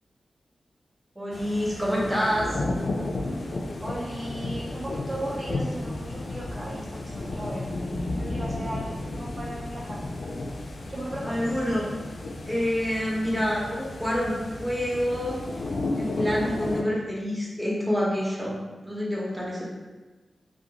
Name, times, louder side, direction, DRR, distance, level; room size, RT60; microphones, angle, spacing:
voice 1, 1.2-2.6 11.2-11.9 12.4-15.4 16.0-18.6 18.8-19.6, equal, 10° right, -6 dB, 0.7 m, -27 dB
sound 1, 1.3-16.8, left 2 dB, 65° left, 0.3 m, -33 dB
voice 2, 3.8-10.1 10.9-11.6, right 1 dB, 50° right, -6 dB, 0.7 m, -37 dB
2.4 x 2.2 x 2.8 m, 1.2 s
cardioid pair, 50°, 0 cm